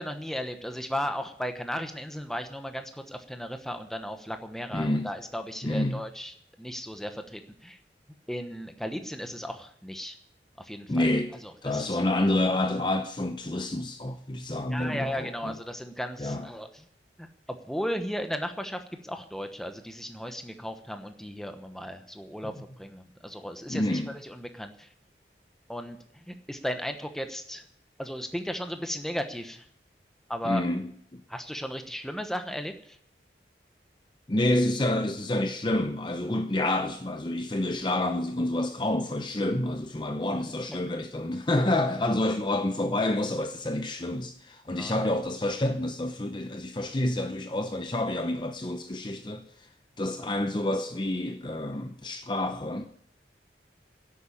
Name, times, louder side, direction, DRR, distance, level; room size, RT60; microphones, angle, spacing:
voice 1, 0.0-7.8 8.3-10.2 10.6-11.1 11.6-12.0 14.7-16.8 17.2-24.9 25.7-27.6 28.0-29.7 30.3-30.7 31.3-33.0 40.2-40.4 44.8-44.9 50.2-50.3, equal, ahead, 1.0 m, -35 dB
voice 2, 4.7-5.1 5.6-6.0 10.9-11.3 11.6-15.6 16.2-16.5 22.4-22.5 23.7-24.1 30.4-31.2 34.3-49.7 50.0-52.9, left 1 dB, 25° left, 0.7 m, -28 dB
11.0 x 8.5 x 9.9 m
head